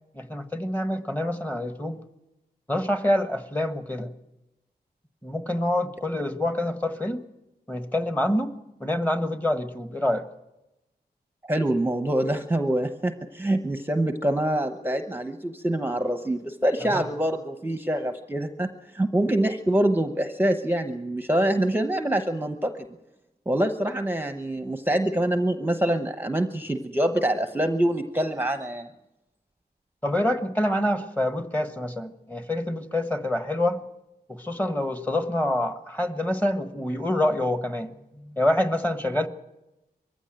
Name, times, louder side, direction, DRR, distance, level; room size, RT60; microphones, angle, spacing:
voice 1, 0.1-2.0 2.7-4.1 5.2-7.2 7.7-8.5 8.8-10.2 16.9-17.1 30.0-33.8 34.3-37.9 38.1-39.3, left 1 dB, 10° left, 8 dB, 1.4 m, -26 dB
voice 2, 11.5-22.7 23.5-28.9, right 1 dB, 10° right, 7 dB, 0.9 m, -25 dB
22.0 x 15.0 x 8.9 m, 0.96 s
wide cardioid pair, 105°, 17 cm